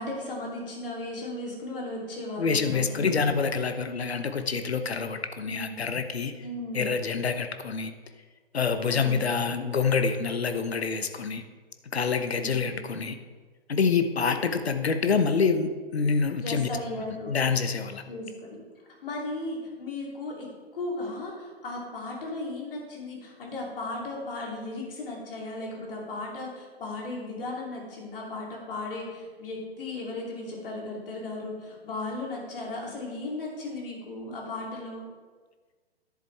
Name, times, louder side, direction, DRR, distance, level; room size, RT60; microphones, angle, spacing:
voice 1, 0.0-3.2 5.4-5.8 6.4-6.9 8.9-9.3 12.3-12.9 14.3-14.4 16.4-17.3 18.1-18.6 19.0-20.5 20.7-35.1, left 2 dB, 60° left, -2 dB, 3.0 m, -36 dB
voice 2, 2.4-6.3 6.7-7.9 8.5-11.4 11.9-13.2 13.7-16.7 17.3-18.0, left 5 dB, 80° left, 9 dB, 0.9 m, -26 dB
10.5 x 7.5 x 3.4 m, 1.4 s
figure-of-eight pair, 120°, 31 cm